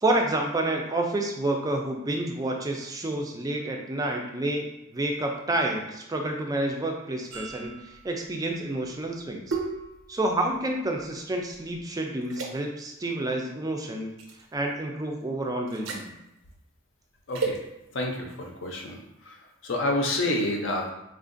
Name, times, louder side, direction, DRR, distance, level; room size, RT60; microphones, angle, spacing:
voice 1, 0.0-9.6 10.1-14.1 14.5-16.1, right 1 dB, 20° right, 1 dB, 0.3 m, -29 dB
sound 1, 7.3-11.8 12.3-12.5 14.2-14.4 15.7-16.1 17.3-17.6, right 4 dB, 80° right, 0.5 m, -35 dB
voice 2, 17.9-19.0 19.3-19.4 19.6-20.9, left 1 dB, 65° left, 1 dB, 0.6 m, -28 dB
3.6 x 2.4 x 2.5 m, 0.90 s
head